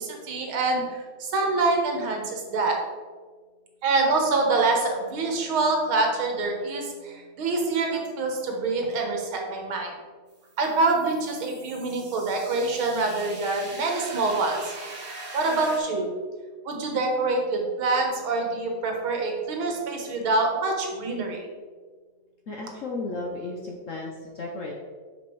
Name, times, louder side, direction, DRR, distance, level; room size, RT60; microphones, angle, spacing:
voice 1, 0.0-2.8 3.8-9.9 10.6-14.7 15.3-16.1 16.7-21.5, right 3 dB, 80° right, 2 dB, 2.1 m, -26 dB
sound 1, 10.3-15.8, right 3 dB, 50° right, 2.1 m, -42 dB
voice 2, 22.5-24.7, left 2 dB, 55° left, 0 dB, 0.9 m, -34 dB
6.1 x 5.9 x 4.6 m, 1.5 s
omnidirectional pair, 2.2 m